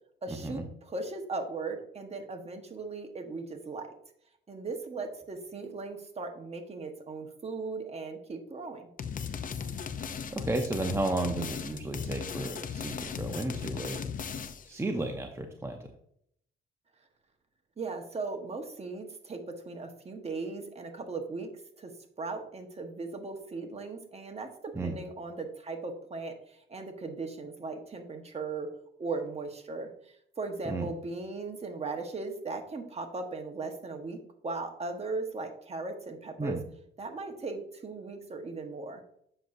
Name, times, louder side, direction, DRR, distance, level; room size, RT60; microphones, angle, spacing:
voice 1, 0.2-3.9 4.5-8.9 17.8-21.5 21.8-21.9 22.2-28.7 29.0-36.6 37.0-39.0, right 3 dB, 30° right, 4 dB, 1.3 m, -38 dB
sound 1, 9.0-14.7, left 7 dB, 45° left, 0.7 m, -37 dB
voice 2, 10.0-14.0 14.7-15.8 24.8-24.9 30.7-30.9 36.4-36.6, right 2 dB, 15° right, 3 dB, 0.8 m, -33 dB
7.8 x 6.4 x 2.7 m, 0.70 s
cardioid pair, 90°, 20 cm